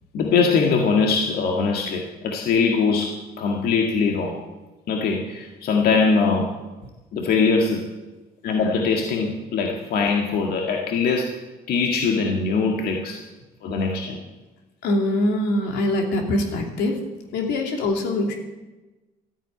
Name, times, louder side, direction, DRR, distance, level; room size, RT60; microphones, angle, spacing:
voice 1, 0.1-4.4 4.9-6.6 7.1-7.9 8.4-11.3 11.7-13.2 13.6-14.2, left 4 dB, 65° left, 1 dB, 1.9 m, -22 dB
voice 2, 14.8-16.9 17.3-18.4, left 1 dB, 85° left, 3 dB, 2.8 m, -23 dB
13.5 x 9.1 x 9.4 m, 1.1 s
cardioid pair, 110°, 17 cm